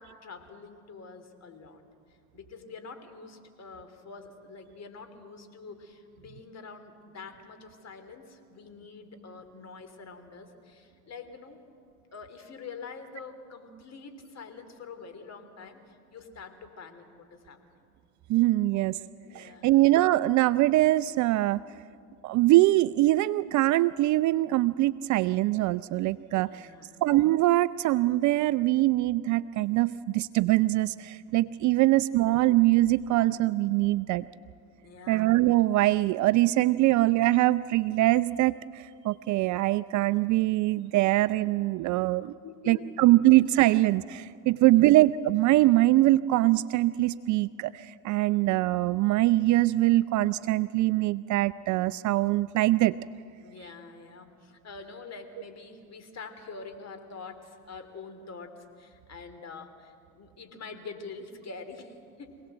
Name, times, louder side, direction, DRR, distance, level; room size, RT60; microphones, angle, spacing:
voice 1, 0.0-1.8 2.3-11.6 12.1-17.6 19.2-19.7 26.1-26.2 26.5-26.9 31.8-31.9 34.8-35.3 42.2-43.5 44.5-44.9 53.4-62.3, left 4 dB, 35° left, 7 dB, 3.2 m, -45 dB
voice 2, 18.3-19.0 19.3-21.6 22.2-26.7 27.0-34.2 35.1-42.3 42.7-53.0, right 17 dB, 45° right, 17 dB, 0.5 m, -23 dB
25.0 x 18.0 x 7.9 m, 2.3 s
hypercardioid pair, 80°, 44 cm